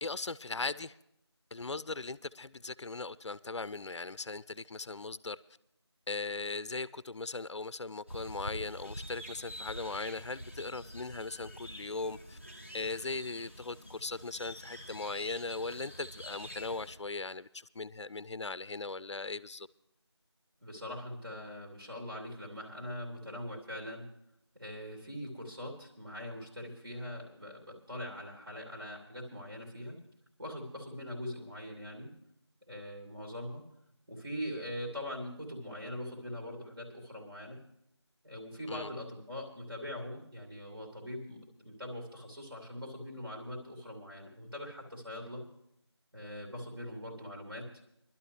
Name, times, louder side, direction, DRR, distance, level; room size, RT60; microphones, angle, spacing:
voice 1, 0.0-1.0 1.5-5.4 6.1-12.4 12.7-19.7 38.7-38.9, left 3 dB, 75° left, 17 dB, 0.4 m, -39 dB
Birds and Ambiance at La Cruz plaza, 8.1-17.0, equal, 25° right, 1.0 m, -46 dB
voice 2, 20.6-24.1 24.5-30.0 30.4-32.1 32.7-33.6 34.1-37.6 38.2-45.4 46.1-47.7, left 1 dB, 55° right, -1 dB, 3.0 m, -42 dB
22.5 x 12.0 x 3.2 m, 0.80 s
figure-of-eight pair, 180°, 15 cm